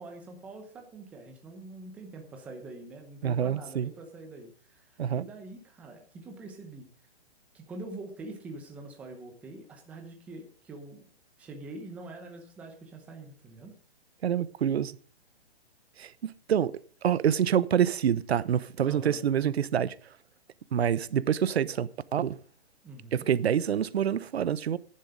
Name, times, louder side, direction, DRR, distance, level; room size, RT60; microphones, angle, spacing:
voice 1, 0.0-6.9 7.5-11.0 11.4-13.7 18.8-19.2 22.8-23.3, right 2 dB, 5° right, 0.8 m, -44 dB
voice 2, 3.2-3.9 5.0-5.2 14.2-15.0 16.0-16.7 17.0-19.9 20.7-22.4 23.1-24.8, right 9 dB, 75° right, 0.9 m, -27 dB
10.5 x 9.9 x 5.0 m
hypercardioid pair, 175°, 32 cm